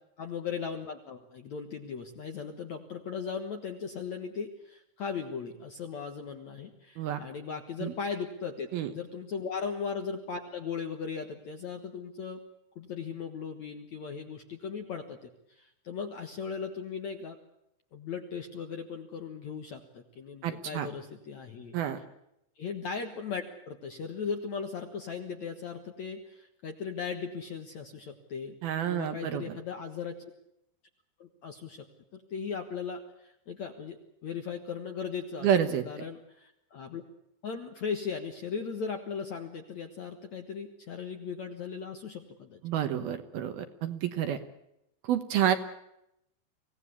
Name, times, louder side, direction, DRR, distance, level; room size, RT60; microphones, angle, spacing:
voice 1, 0.2-12.4 12.8-17.4 17.9-21.8 22.6-28.6 28.9-30.2 31.2-31.9 32.1-37.0 37.4-42.6, left 6 dB, 60° left, 5 dB, 1.9 m, -38 dB
voice 2, 20.4-20.9 21.7-22.0 28.6-29.6 35.4-35.8 42.6-44.4 45.0-45.6, right 10 dB, 65° right, 9 dB, 2.7 m, -29 dB
25.5 x 17.5 x 8.4 m, 0.81 s
omnidirectional pair, 5.2 m